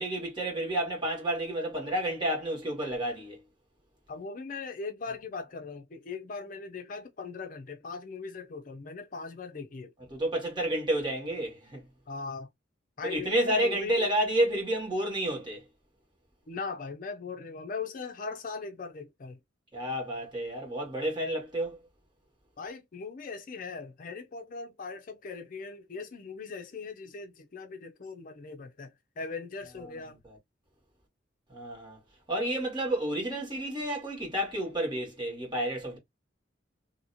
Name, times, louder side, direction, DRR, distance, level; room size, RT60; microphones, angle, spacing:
voice 1, 0.0-3.4 10.1-11.8 13.0-15.6 19.7-21.8 31.5-32.0 32.3-36.0, right 1 dB, 25° right, 1.7 m, -30 dB
voice 2, 4.1-9.9 12.1-12.5 13.0-14.1 16.5-19.4 22.6-30.2, left 4 dB, 45° left, 0.5 m, -39 dB
2.8 x 2.7 x 2.6 m
head